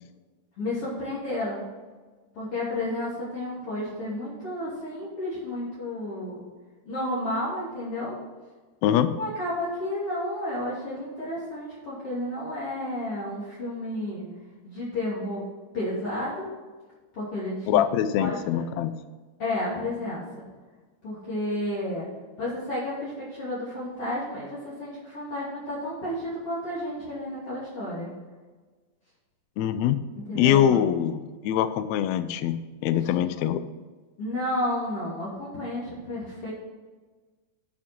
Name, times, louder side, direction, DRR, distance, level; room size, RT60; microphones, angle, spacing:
voice 1, 0.6-1.6 2.4-6.4 6.9-8.2 9.2-14.3 14.6-15.4 15.7-16.5 17.1-17.8 18.2-18.6 19.4-20.2 21.0-22.1 22.4-28.1 30.3-30.8 33.0-33.2 34.2-36.5, left 1 dB, 45° left, -8 dB, 3.5 m, -31 dB
voice 2, 8.8-9.1 17.7-18.9 29.6-30.0 30.3-33.6, left 10 dB, 85° left, 11 dB, 1.5 m, -23 dB
11.5 x 6.5 x 4.5 m, 1.3 s
omnidirectional pair, 3.9 m